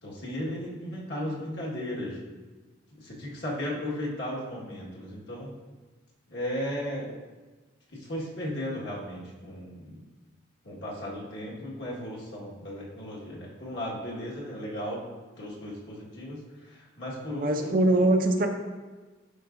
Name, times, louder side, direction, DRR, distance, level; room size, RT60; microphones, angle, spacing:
voice 1, 0.0-2.2 2.9-5.5 6.3-7.2 7.9-10.0 10.6-15.0 15.4-17.8, equal, 55° left, -5 dB, 1.6 m, -35 dB
voice 2, 17.4-18.5, right 1 dB, 45° right, 4 dB, 0.5 m, -22 dB
11.0 x 4.7 x 2.6 m, 1.3 s
head